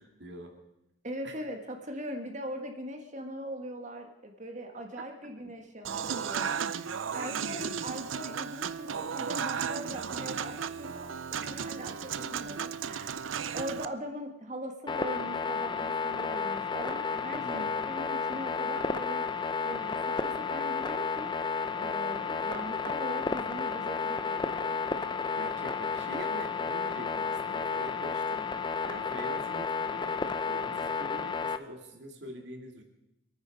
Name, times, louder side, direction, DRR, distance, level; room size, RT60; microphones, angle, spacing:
voice 1, 0.2-0.5 1.2-1.4 7.2-7.6 17.3-17.8 25.4-28.4 28.8-32.8, right 1 dB, 60° right, 3 dB, 2.4 m, -44 dB
voice 2, 1.0-13.2 13.5-19.2 19.6-21.3 21.7-24.8, equal, 40° right, 4 dB, 1.6 m, -41 dB
Human voice / Acoustic guitar / Piano, 5.8-13.9, right 7 dB, 80° right, 0.6 m, -35 dB
sound 1, 14.9-31.6, left 5 dB, 25° left, 0.6 m, -32 dB
26.0 x 9.3 x 5.2 m, 0.87 s
head